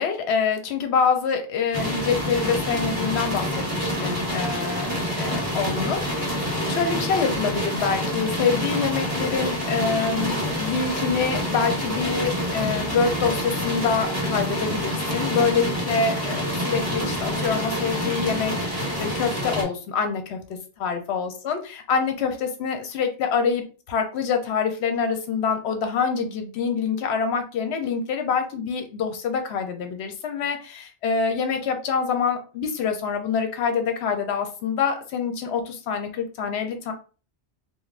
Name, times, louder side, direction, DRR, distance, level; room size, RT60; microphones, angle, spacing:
voice 1, 0.0-4.9 5.2-6.4 6.7-36.9, left 5 dB, 70° left, 5 dB, 0.8 m, -26 dB
sound 1, 1.7-19.6, equal, 15° right, 1.1 m, -27 dB
3.3 x 2.2 x 2.4 m, 0.36 s
omnidirectional pair, 1.2 m